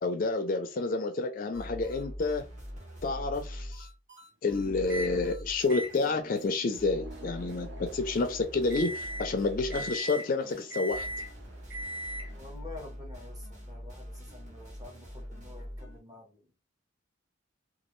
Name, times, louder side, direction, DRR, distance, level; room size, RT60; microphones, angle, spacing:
voice 1, 0.0-2.4 3.0-3.9 4.4-11.1, left 3 dB, 40° left, 0.4 m, -29 dB
sound 1, 1.5-6.1 6.3-6.5 6.7-16.0, equal, 35° right, 1.2 m, -44 dB
Microwave oven, 4.9-5.2 5.7-12.5, right 1 dB, 55° right, 0.5 m, -40 dB
voice 2, 12.3-16.6, left 3 dB, 15° right, 0.8 m, -49 dB
3.0 x 2.4 x 3.0 m
head